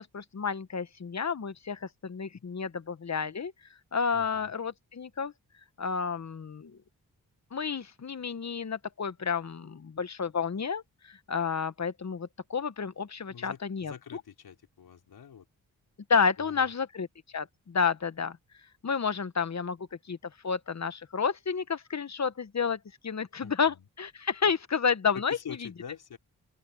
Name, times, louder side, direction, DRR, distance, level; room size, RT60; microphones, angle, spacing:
voice 1, 0.0-3.5 3.9-5.3 5.8-6.8 7.5-14.2 16.1-17.1 17.3-18.4 18.8-19.8 20.1-20.2 20.4-25.6, left 6 dB, 45° left, 1.4 m, -30 dB
voice 2, 4.1-4.5 13.3-15.4 16.4-16.7 23.4-23.9 25.1-26.2, left 8 dB, 80° left, 5.0 m, -45 dB
open air
cardioid pair, 50°, 37 cm